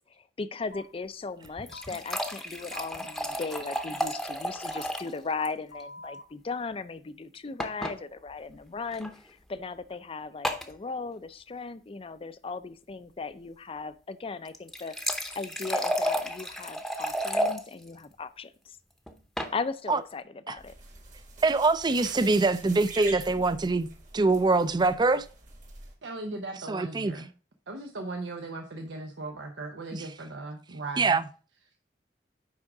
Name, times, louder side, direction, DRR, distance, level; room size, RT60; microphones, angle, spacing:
voice 1, 0.2-14.9 15.3-18.8 19.5-20.7, left 4 dB, 30° left, 0.4 m, -37 dB
sound 1, 0.7-0.8 1.7-1.9 2.7-2.8 3.7-3.8 4.7-4.8 5.7-6.2, left 2 dB, 90° left, 1.3 m, -45 dB
sound 2, 1.4-5.2 5.4-5.5 5.8-5.9 7.6-8.0 8.9-9.1 10.4-10.7 14.5-17.6 19.1-19.5, equal, ahead, 0.8 m, -32 dB
sound 3, 20.6-25.9, right 3 dB, 45° right, 1.5 m, -45 dB
voice 2, 21.4-23.9 24.1-25.2 26.7-27.1 31.0-31.2, right 3 dB, 25° right, 0.4 m, -24 dB
voice 3, 26.0-27.3 27.7-31.2, right 2 dB, 90° right, 0.8 m, -38 dB
9.7 x 3.7 x 4.8 m
head